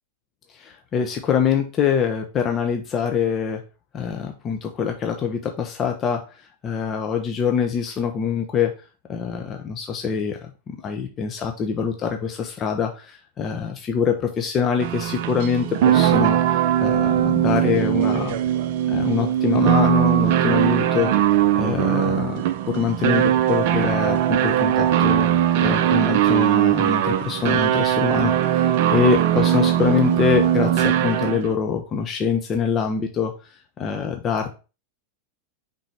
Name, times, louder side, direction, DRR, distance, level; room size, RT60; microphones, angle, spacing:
voice 1, 0.5-3.6 3.9-6.2 6.6-8.7 9.1-10.4 10.7-18.4 18.9-21.1 21.6-22.4 22.7-25.3 25.6-33.3 33.8-34.5, left 6 dB, 25° left, 4 dB, 0.8 m, -24 dB
sound 1, 14.8-31.5, right 11 dB, 50° right, 0.4 m, -20 dB
5.1 x 3.8 x 5.6 m, 0.33 s
figure-of-eight pair, 90°, 0 cm